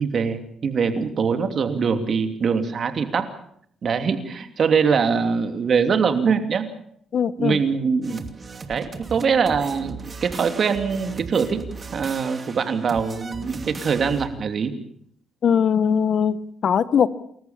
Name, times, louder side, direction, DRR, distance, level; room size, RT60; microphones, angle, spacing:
voice 1, 0.0-3.3 3.8-6.6 7.4-8.2 8.7-11.6 11.9-14.7, right 6 dB, 50° right, 8 dB, 2.9 m, -23 dB
voice 2, 7.1-7.6 15.4-17.1, left 7 dB, 55° left, 16 dB, 1.1 m, -20 dB
sound 1, 8.0-14.3, right 4 dB, 35° right, 2.6 m, -37 dB
29.0 x 14.0 x 7.3 m, 0.66 s
cardioid pair, 90°, 0 cm